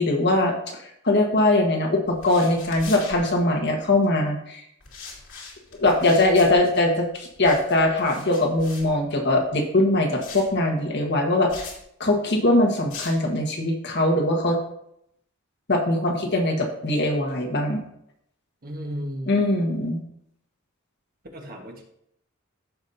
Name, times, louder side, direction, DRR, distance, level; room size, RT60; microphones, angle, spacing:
voice 1, 0.0-4.6 5.8-11.5 12.0-14.6 15.7-17.8 19.3-20.0, left 2 dB, 55° left, 1 dB, 1.5 m, -21 dB
sound 1, 2.1-3.9 4.8-9.5 10.2-10.6 11.5-11.8 12.9-13.3, left 4 dB, 80° left, 2.5 m, -41 dB
voice 2, 18.6-19.7 21.3-21.8, equal, 45° right, 1 dB, 1.4 m, -35 dB
14.0 x 5.3 x 2.7 m, 0.74 s
head